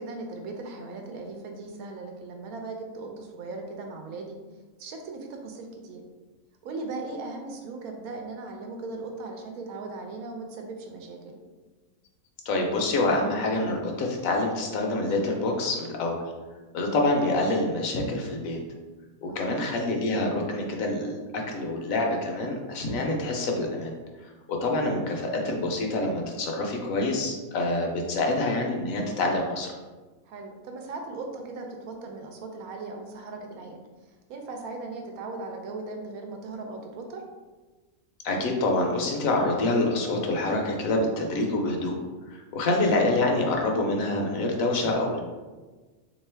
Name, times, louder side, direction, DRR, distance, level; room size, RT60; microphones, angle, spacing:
voice 1, 0.0-4.4 4.8-6.0 6.6-11.4 19.3-19.6 30.3-33.8 34.3-37.2, right 3 dB, 80° right, 3 dB, 1.1 m, -38 dB
voice 2, 12.5-16.2 16.7-18.6 19.2-23.9 24.5-29.7 38.2-41.9 42.3-45.2, left 2 dB, 70° left, 1 dB, 1.0 m, -26 dB
3.5 x 3.0 x 3.3 m, 1.3 s
omnidirectional pair, 1.5 m